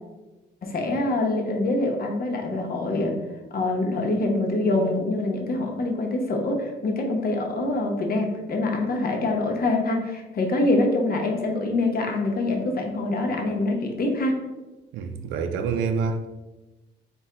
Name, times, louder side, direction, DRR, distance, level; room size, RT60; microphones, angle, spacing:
voice 1, 0.6-3.1 3.5-14.4, left 2 dB, 50° left, 0.9 m, -25 dB
voice 2, 14.9-16.4, right 5 dB, 85° right, 0.4 m, -27 dB
4.3 x 2.2 x 3.7 m
cardioid pair, 90°, 20 cm